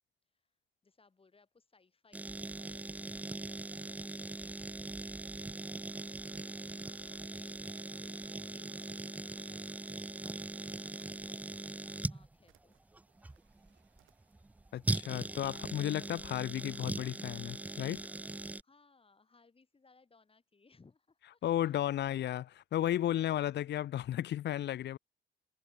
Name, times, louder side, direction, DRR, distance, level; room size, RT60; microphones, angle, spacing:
voice 1, 0.3-0.6 0.8-5.3 5.8-7.6 8.0-12.8 18.2-21.8, left 4 dB, 30° left, 6.4 m, -67 dB
sound 1, 2.1-18.6, right 2 dB, 10° right, 0.3 m, -40 dB
Waves surf, 4.6-16.8, right 9 dB, 60° right, 7.3 m, -77 dB
sound 2, 8.3-10.8 11.0-13.7 14.0-14.5 14.8-17.5, right 15 dB, 85° right, 4.3 m, -71 dB
voice 2, 14.7-18.0 21.4-25.0, left 12 dB, 60° left, 0.6 m, -34 dB
cardioid pair, 90°, 20 cm